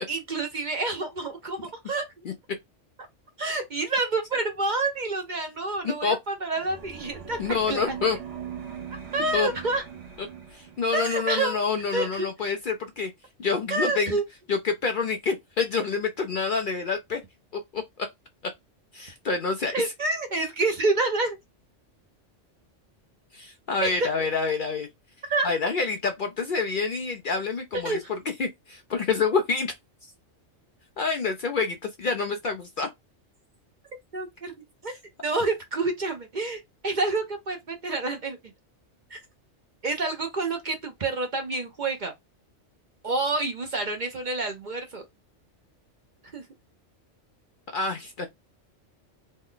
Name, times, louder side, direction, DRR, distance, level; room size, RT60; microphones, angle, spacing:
voice 1, 0.1-2.0 3.4-7.9 9.1-9.8 10.9-11.6 11.9-12.3 13.7-14.2 19.7-21.4 23.8-24.1 25.3-25.5 27.8-28.0 34.1-34.5 34.8-34.9 35.2-38.4 39.1-39.2 39.8-42.1 43.0-45.0 46.3-46.4, right 3 dB, 45° right, 0.7 m, -28 dB
voice 2, 5.8-6.2 7.4-8.2 9.3-9.5 10.2-10.3 10.5-13.1 13.4-14.2 14.5-17.2 17.7-18.1 18.4-18.5 18.9-19.9 23.3-24.9 25.4-29.7 31.0-32.9 47.7-48.3, left 4 dB, 55° left, 0.6 m, -27 dB
sound 1, 6.6-11.2, right 7 dB, 75° right, 1.1 m, -41 dB
3.2 x 2.1 x 3.7 m
omnidirectional pair, 1.2 m